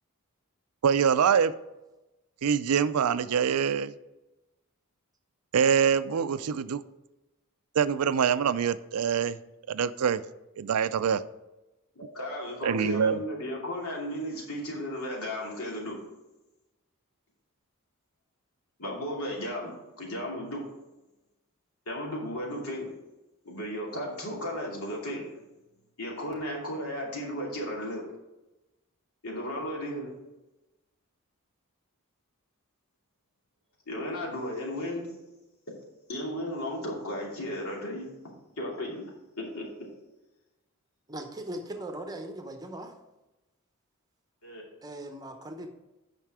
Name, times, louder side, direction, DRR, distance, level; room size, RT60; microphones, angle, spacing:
voice 1, 0.8-1.5 2.4-3.9 5.5-6.8 7.8-9.4 9.7-10.2 10.6-11.2 12.6-13.2, right 7 dB, 90° right, 15 dB, 0.4 m, -24 dB
voice 2, 11.9-16.0 18.8-20.6 21.9-22.9 23.4-25.2 26.0-28.0 29.2-30.1 33.9-35.1 36.1-38.1 38.6-39.0 39.4-39.7 44.4-44.6, left 1 dB, 80° left, -2 dB, 2.7 m, -34 dB
voice 3, 41.1-42.9 44.8-45.7, right 1 dB, 15° right, 5 dB, 0.8 m, -39 dB
9.0 x 5.7 x 4.8 m, 1.0 s
head